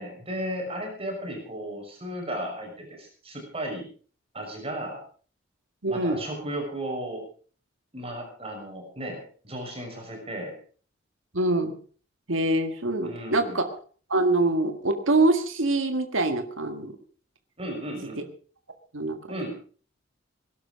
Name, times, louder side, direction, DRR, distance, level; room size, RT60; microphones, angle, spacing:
voice 1, 0.0-3.9 4.3-5.0 5.9-7.3 7.9-10.5 13.0-13.6 17.6-18.2 19.3-19.5, right 1 dB, 30° right, 2 dB, 5.9 m, -35 dB
voice 2, 5.8-6.2 11.3-11.7 12.3-13.6 14.1-16.9 18.9-19.2, right 2 dB, 75° right, 7 dB, 1.9 m, -24 dB
20.5 x 11.5 x 5.2 m, 0.42 s
head